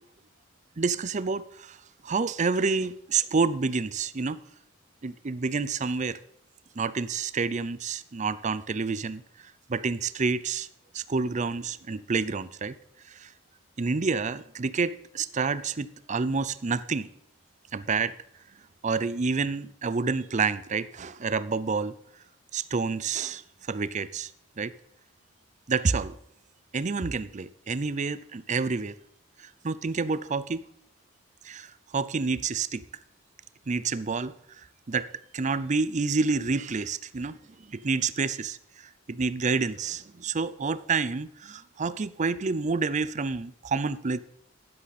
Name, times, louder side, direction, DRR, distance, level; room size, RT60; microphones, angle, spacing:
voice 1, 0.8-1.8 2.0-4.4 5.0-6.2 6.8-9.2 9.7-10.7 10.9-12.8 13.1-13.3 13.8-17.1 17.7-18.1 18.8-22.0 22.5-23.4 23.7-24.3 24.6-24.7 25.7-26.2 26.7-29.0 29.4-30.7 31.4-32.8 33.7-34.3 34.9-37.4 37.7-44.2, right 4 dB, 35° right, 0.5 m, -28 dB
13.0 x 11.0 x 4.2 m
head